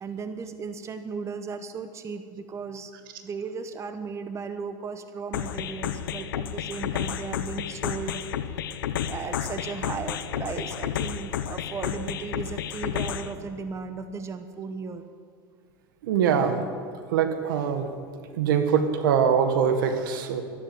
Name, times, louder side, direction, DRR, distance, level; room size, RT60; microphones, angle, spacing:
voice 1, 0.0-2.9 3.2-8.2 8.5-8.6 8.9-15.1, right 5 dB, 25° right, 9 dB, 1.0 m, -36 dB
sound 1, 5.3-13.3, left 9 dB, 90° left, 0.9 m, -31 dB
voice 2, 16.0-16.7 17.1-18.0 18.3-20.4, right 7 dB, 80° right, 8 dB, 1.7 m, -23 dB
12.5 x 12.5 x 7.9 m, 2.2 s
supercardioid pair, 115°, 11 cm